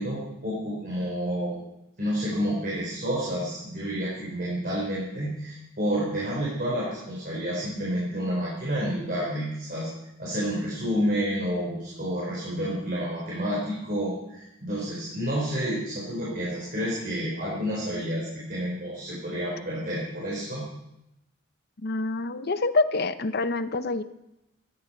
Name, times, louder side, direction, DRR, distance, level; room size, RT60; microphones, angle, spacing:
voice 1, 0.0-1.6 2.0-9.9 10.2-20.6, equal, 45° right, -5 dB, 4.2 m, -29 dB
voice 2, 21.8-24.0, left 3 dB, 50° left, 12 dB, 0.7 m, -26 dB
17.5 x 13.0 x 4.3 m, 0.87 s
head